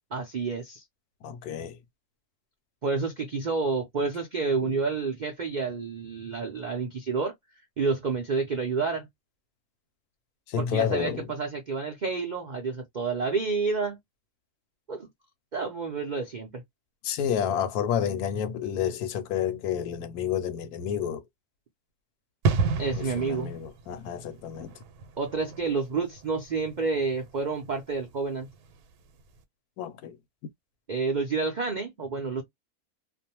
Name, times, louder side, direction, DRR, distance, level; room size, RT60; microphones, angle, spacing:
voice 1, 0.1-0.8 2.8-7.3 7.8-9.1 10.7-14.0 14.9-15.1 15.5-16.6 22.8-23.6 25.2-28.5 30.9-32.4, right 4 dB, 65° right, 0.4 m, -29 dB
voice 2, 1.2-1.8 4.6-4.8 10.5-11.3 17.0-21.2 23.0-24.8 29.8-30.2, left 8 dB, 80° left, 1.0 m, -30 dB
sound 1, 22.4-28.9 29.2-29.4, right 5 dB, 85° right, 1.1 m, -32 dB
2.6 x 2.1 x 2.8 m
omnidirectional pair, 1.6 m